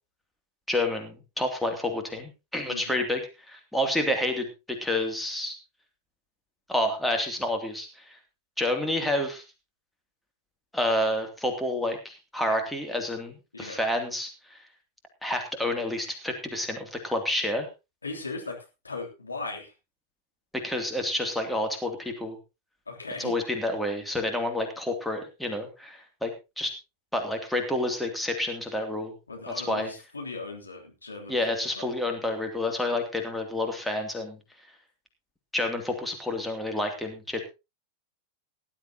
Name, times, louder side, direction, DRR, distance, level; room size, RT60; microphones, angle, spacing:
voice 1, 0.7-5.6 6.7-8.2 8.6-9.4 10.7-14.6 15.2-17.7 20.5-22.4 23.2-26.3 26.6-26.7 27.1-29.1 29.6-29.9 31.3-34.4 35.5-37.4, left 1 dB, 5° left, 3 dB, 2.7 m, -29 dB
voice 2, 18.0-18.6 18.8-19.7 22.9-23.3 29.3-31.4 31.7-31.9, left 3 dB, 80° left, 0 dB, 3.2 m, -37 dB
18.0 x 11.5 x 2.9 m, 0.27 s
figure-of-eight pair, 90°, 0 cm